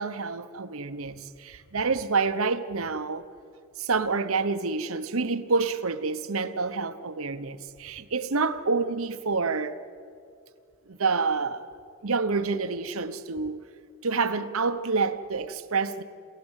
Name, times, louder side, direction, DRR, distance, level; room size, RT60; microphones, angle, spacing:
voice 1, 0.0-3.3 3.8-9.8 10.9-11.7 12.0-13.6 14.0-16.0, right 4 dB, 75° right, 1.0 m, -28 dB
26.5 x 17.5 x 8.3 m
head